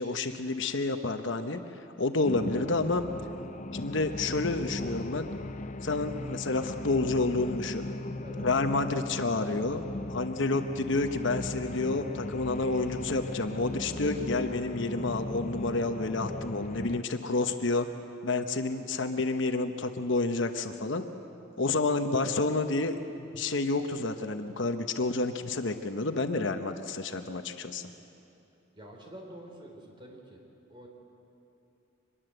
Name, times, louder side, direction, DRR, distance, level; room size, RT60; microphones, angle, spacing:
voice 1, 0.0-1.6 2.0-3.0 3.7-5.3 5.8-7.9 8.4-9.8 10.1-17.9 18.2-21.1 21.6-27.9, left 3 dB, 60° left, 7 dB, 1.0 m, -29 dB
sound 1, 2.2-17.0, left 2 dB, 35° left, 0.6 m, -38 dB
voice 2, 28.8-30.4 30.7-30.9, right 1 dB, 25° right, 1 dB, 3.9 m, -47 dB
24.0 x 21.5 x 7.9 m, 2.8 s
head